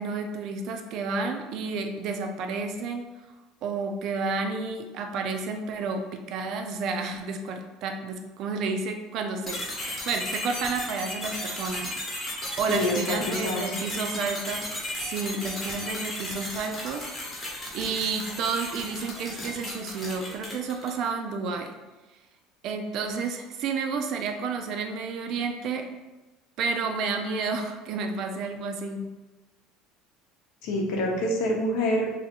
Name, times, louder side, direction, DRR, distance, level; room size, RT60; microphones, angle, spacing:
voice 1, 0.0-3.1 3.6-9.6 10.1-14.7 14.9-17.1 17.7-21.7 22.6-25.9 26.6-29.1, right 4 dB, 45° right, 4 dB, 0.4 m, -31 dB
sound 1, 9.5-21.0, left 1 dB, 15° left, 0.9 m, -35 dB
voice 2, 12.7-13.8 30.6-32.1, left 1 dB, 65° left, 0 dB, 0.8 m, -26 dB
2.7 x 2.6 x 4.2 m, 1.1 s
cardioid pair, 170°, 0 cm